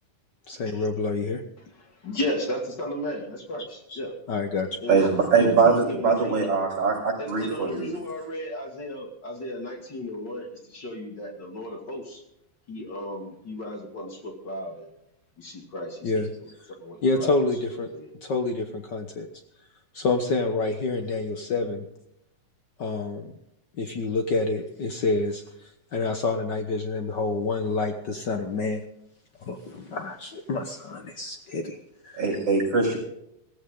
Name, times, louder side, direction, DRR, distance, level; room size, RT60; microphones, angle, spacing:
voice 1, 0.5-1.4 3.9-4.0 4.3-4.8 16.0-16.3 17.0-17.9 18.2-19.3 19.9-21.9 22.8-23.3 23.8-28.8 29.4-31.8 32.0-32.2, left 3 dB, 70° left, 5 dB, 1.0 m, -28 dB
voice 2, 1.7-4.1 4.8-6.4 7.2-12.2 12.7-14.9 15.4-18.1, left 1 dB, 35° left, 3 dB, 2.7 m, -35 dB
voice 3, 4.9-7.9 32.2-33.0, right 4 dB, 45° right, -2 dB, 6.5 m, -22 dB
16.5 x 15.0 x 3.8 m, 0.81 s
omnidirectional pair, 3.7 m